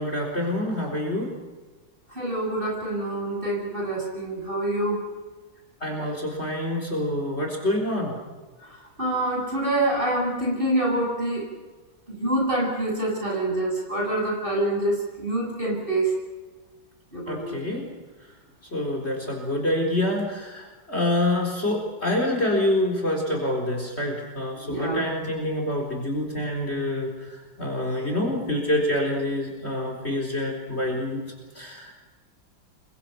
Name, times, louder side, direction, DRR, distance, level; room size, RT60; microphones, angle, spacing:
voice 1, 0.0-1.3 5.8-8.1 17.3-17.9 18.7-31.2 31.6-31.9, left 1 dB, 35° left, 1 dB, 4.4 m, -26 dB
voice 2, 2.1-5.0 8.6-11.5 12.1-16.1 17.1-17.5 24.6-25.1, right 1 dB, 25° right, -2 dB, 8.1 m, -26 dB
28.5 x 24.5 x 5.9 m, 1.3 s
omnidirectional pair, 2.1 m